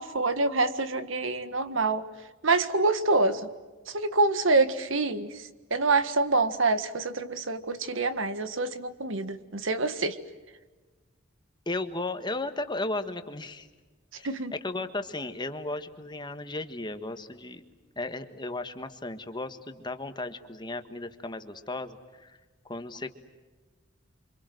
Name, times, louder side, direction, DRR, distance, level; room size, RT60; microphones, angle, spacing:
voice 1, 0.0-2.0 2.4-3.5 3.9-10.2 14.2-14.5, right 3 dB, 75° right, 11 dB, 1.7 m, -26 dB
voice 2, 11.6-13.7 14.2-14.3 14.6-17.6 18.0-22.4 22.6-23.1, left 2 dB, 20° left, 8 dB, 1.6 m, -35 dB
28.5 x 26.0 x 7.9 m, 1.3 s
head